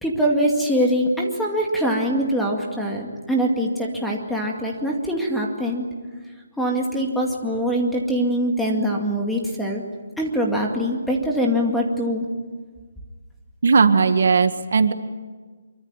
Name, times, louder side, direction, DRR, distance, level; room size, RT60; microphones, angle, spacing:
voice 1, 0.0-5.9 6.6-9.8 10.2-12.3, equal, ahead, -1 dB, 2.2 m, -23 dB
voice 2, 13.6-14.9, right 5 dB, 60° right, 9 dB, 1.7 m, -17 dB
25.5 x 24.0 x 9.1 m, 1.4 s
hypercardioid pair, 175°, 0 cm